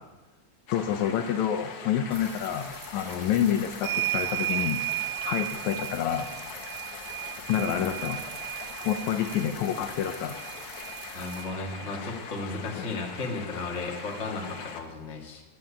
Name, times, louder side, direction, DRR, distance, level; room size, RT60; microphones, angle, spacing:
voice 1, 0.7-4.8 5.3-6.3 7.5-8.2 8.8-10.4 12.8-12.9, left 9 dB, 80° left, 7 dB, 2.0 m, -28 dB
sound 1, 0.7-14.8, left 6 dB, 60° left, 1.7 m, -42 dB
sound 2, 2.1-11.4, right 2 dB, 40° right, 0.7 m, -46 dB
sound 3, 3.8-11.9 13.2-13.3 13.6-14.7, right 17 dB, 85° right, 1.5 m, -35 dB
voice 2, 11.1-15.4, left 3 dB, 30° left, 0 dB, 1.6 m, -34 dB
10.5 x 7.6 x 8.2 m, 1.2 s
omnidirectional pair, 3.5 m